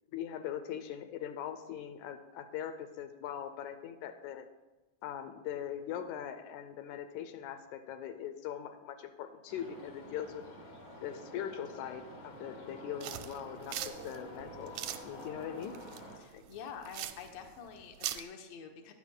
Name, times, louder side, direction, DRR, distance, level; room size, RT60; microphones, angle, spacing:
voice 1, 0.1-4.5 5.0-10.4 11.0-14.8 15.0-15.8 16.3-16.4, left 9 dB, 90° left, 7 dB, 2.0 m, -41 dB
sound 1, 9.5-16.2, equal, 45° left, 1.7 m, -48 dB
sound 2, 13.0-18.2, right 12 dB, 80° right, 1.5 m, -42 dB
voice 2, 16.2-18.9, left 7 dB, 70° left, 4 dB, 1.9 m, -47 dB
14.5 x 9.8 x 2.2 m, 1.1 s
omnidirectional pair, 3.3 m